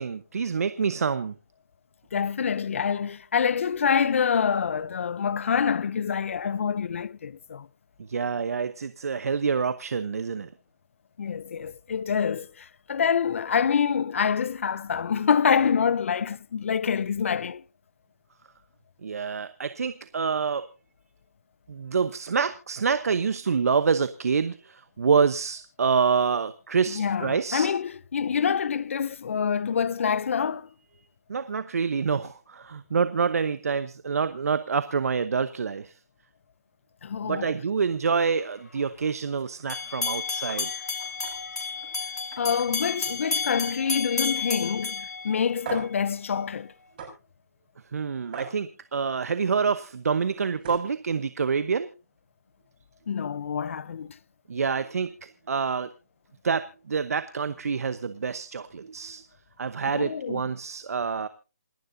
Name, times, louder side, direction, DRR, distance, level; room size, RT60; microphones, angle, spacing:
voice 1, 0.0-1.3 8.1-10.5 19.0-20.7 21.7-27.7 31.3-35.9 37.2-40.7 47.9-51.9 54.5-55.9 56.4-59.2 59.6-61.3, right 5 dB, 65° right, 0.9 m, -27 dB
voice 2, 2.1-7.7 11.2-17.6 26.9-30.7 37.0-37.5 42.4-46.7 53.1-54.1 59.9-60.4, left 7 dB, 50° left, 0.6 m, -26 dB
sound 1, 39.7-45.9, left 4 dB, 80° left, 3.0 m, -31 dB
sound 2, 40.5-40.6 41.0-41.3 41.7-41.9 42.3-43.5 43.8-44.2 44.6-44.7 45.6-46.0 47.0-47.1 48.3-48.5 50.2-50.3 50.6-50.9, right 6 dB, 35° right, 6.6 m, -39 dB
28.0 x 11.0 x 2.7 m
hypercardioid pair, 165°, 9 cm